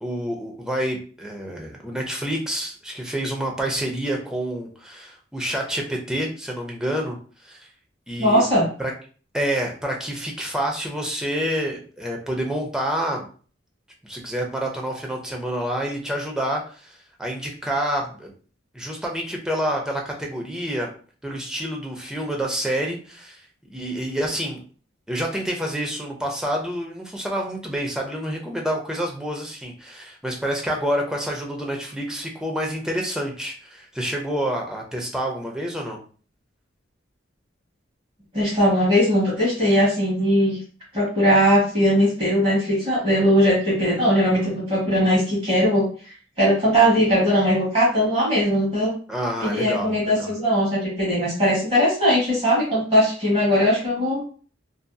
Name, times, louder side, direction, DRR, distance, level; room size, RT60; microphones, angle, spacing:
voice 1, 0.0-7.2 7.4-7.6 8.1-8.4 8.8-8.9 9.3-13.3 14.0-18.3 18.7-20.9 21.2-23.4 23.7-24.6 25.1-36.0 49.1-50.3, equal, 5° right, 0 dB, 0.5 m, -28 dB
voice 2, 8.2-8.7 38.3-40.6 40.9-45.9 46.4-48.9 49.4-54.2, equal, 30° right, -7 dB, 1.1 m, -19 dB
2.6 x 2.5 x 2.2 m, 0.41 s
head